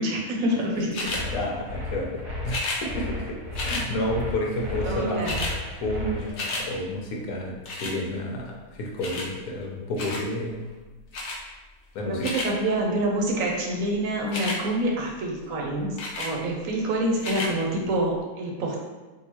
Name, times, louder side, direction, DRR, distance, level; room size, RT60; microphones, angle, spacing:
voice 1, 0.0-1.3 4.8-5.4 12.0-18.8, right 1 dB, 70° right, -1 dB, 1.0 m, -27 dB
sound 1, 0.9-1.2 2.4-2.8 3.5-3.9 4.8-4.9 5.1-5.6 5.9-6.7 7.7-8.0 9.0-9.3 10.0-10.3 11.1-11.4 12.0-12.5 14.2-14.6 16.0-16.3 17.1-17.5 18.2-18.3, left 2 dB, 55° left, 0.6 m, -31 dB
sound 2, 1.0-6.3, left 2 dB, 40° right, 0.7 m, -33 dB
voice 2, 1.3-5.4 5.8-8.5 8.7-10.7 11.9-12.3, left 1 dB, 75° left, -1 dB, 1.2 m, -30 dB
3.7 x 2.4 x 2.9 m, 1.3 s
omnidirectional pair, 1.6 m